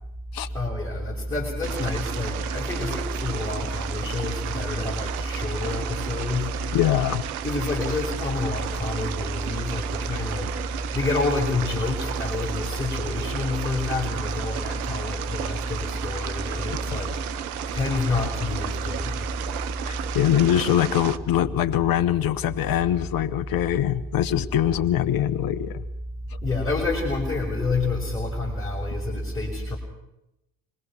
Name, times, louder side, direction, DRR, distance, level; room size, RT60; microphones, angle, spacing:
voice 1, 0.5-6.8 7.4-17.2 17.7-19.3 26.4-29.8, left 2 dB, 10° left, -3 dB, 5.6 m, -27 dB
sound 1, 1.6-21.2, right 11 dB, 80° right, 1.0 m, -34 dB
voice 2, 6.7-7.2 16.7-17.0 17.9-18.0 19.8-25.8, left 11 dB, 50° left, 13 dB, 1.5 m, -23 dB
25.5 x 20.5 x 6.2 m, 0.88 s
hypercardioid pair, 70°, 43 cm